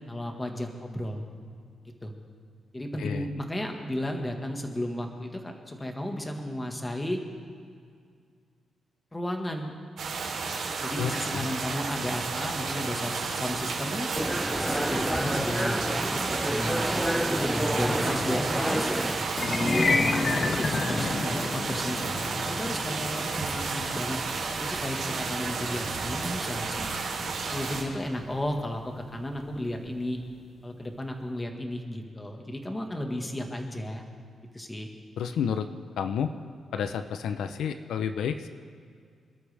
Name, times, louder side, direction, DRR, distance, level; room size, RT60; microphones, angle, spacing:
voice 1, 0.1-1.2 2.0-2.1 2.7-7.2 9.1-9.8 10.8-14.1 14.6-15.8 16.4-16.9 17.2-18.9 19.4-24.2 24.6-26.9 27.5-30.2 30.6-34.0 34.5-34.9, left 1 dB, 15° left, 3 dB, 1.7 m, -33 dB
sound 1, 10.0-27.8, right 4 dB, 75° right, 3.6 m, -32 dB
voice 2, 11.0-11.5 35.2-35.7 36.0-36.3 36.7-38.5, left 7 dB, 85° left, 8 dB, 0.7 m, -30 dB
sound 2, 14.1-19.3, equal, ahead, 0.3 m, -29 dB
sound 3, 19.3-29.6, left 3 dB, 35° left, 0.8 m, -32 dB
26.5 x 13.0 x 3.5 m, 2.2 s
cardioid pair, 135°, 0 cm